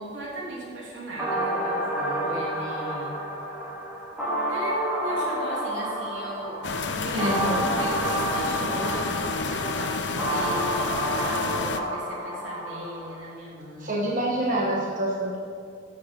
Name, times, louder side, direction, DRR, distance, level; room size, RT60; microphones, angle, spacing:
voice 1, 0.0-3.2 4.5-6.6 6.8-7.3 7.8-14.0 14.4-14.7, right 1 dB, 85° right, -4 dB, 3.1 m, -37 dB
sound 1, 1.2-13.2, right 1 dB, 10° right, 2.5 m, -29 dB
sound 2, 6.6-11.8, left 4 dB, 65° left, 0.7 m, -30 dB
voice 2, 7.1-7.7 13.8-15.4, right 1 dB, 45° right, -3 dB, 1.4 m, -26 dB
13.5 x 6.6 x 5.4 m, 2.3 s
head